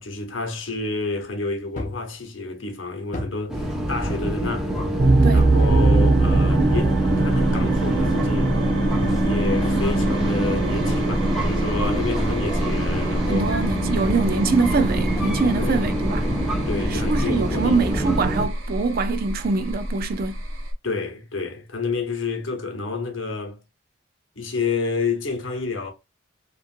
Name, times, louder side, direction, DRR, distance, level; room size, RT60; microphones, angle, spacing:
voice 1, 0.0-4.7 5.3-8.5 9.2-13.5 15.6-15.9 16.7-17.8 20.8-23.6 24.3-25.9, left 3 dB, 80° left, 1.0 m, -29 dB
sound 1, 1.8-2.1 3.1-3.4 4.1-5.1 5.6-5.8 6.6-7.0 7.5-8.3 9.0-9.3 9.6-13.2 13.5-13.7 14.0-14.4 15.2-15.4 16.2-16.6 17.1-17.2, left 1 dB, 40° left, 0.6 m, -36 dB
sound 2, 3.5-18.5, right 1 dB, ahead, 0.6 m, -25 dB
sound 3, 5.0-20.7, right 2 dB, 80° right, 1.0 m, -23 dB
voice 2, 13.3-16.3 16.9-20.4, right 4 dB, 50° right, 0.4 m, -24 dB
3.0 x 2.5 x 2.4 m
head